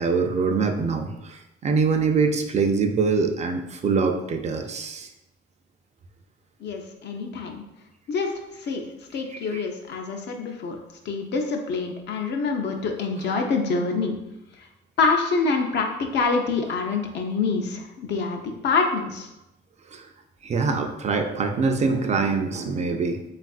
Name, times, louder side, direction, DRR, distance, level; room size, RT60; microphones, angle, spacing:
voice 1, 0.0-5.1 9.5-9.6 19.9-20.1 20.4-23.2, right 4 dB, 35° right, 5 dB, 0.3 m, -24 dB
voice 2, 6.6-7.6 8.1-8.3 8.6-8.8 9.1-10.8 11.1-14.2 15.0-19.3, left 4 dB, 65° left, 3 dB, 0.5 m, -26 dB
3.4 x 2.4 x 2.3 m, 0.90 s
cardioid pair, 80°, 19 cm